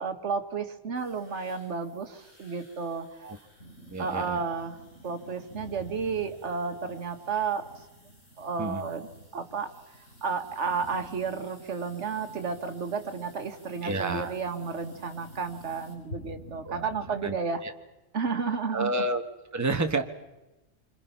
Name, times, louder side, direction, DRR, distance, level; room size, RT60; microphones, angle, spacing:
voice 1, 0.0-3.1 4.0-4.8 5.0-7.8 8.4-9.7 10.2-17.6 18.1-18.9, right 5 dB, 60° right, 7 dB, 1.7 m, -32 dB
sound 1, 0.9-15.9, equal, 55° left, 6.6 m, -60 dB
sound 2, 3.6-17.3, equal, 80° left, 5.6 m, -48 dB
voice 2, 3.9-4.4 8.6-8.8 13.8-14.3 16.6-16.9 17.2-17.3 17.6-17.7 18.7-19.2 19.5-20.0, right 2 dB, 15° right, 6 dB, 1.1 m, -29 dB
27.0 x 25.5 x 5.8 m, 1.0 s
omnidirectional pair, 1.4 m